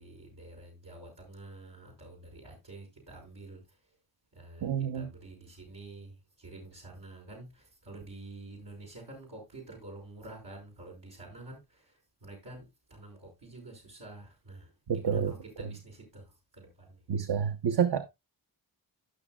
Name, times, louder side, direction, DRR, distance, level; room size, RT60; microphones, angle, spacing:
voice 1, 0.0-4.0 4.3-17.0, right 2 dB, 85° right, 5.3 m, -48 dB
voice 2, 4.6-5.1 14.9-15.3 17.1-18.1, right 7 dB, 70° right, 0.9 m, -28 dB
16.0 x 6.3 x 2.3 m
cardioid pair, 75°, 41 cm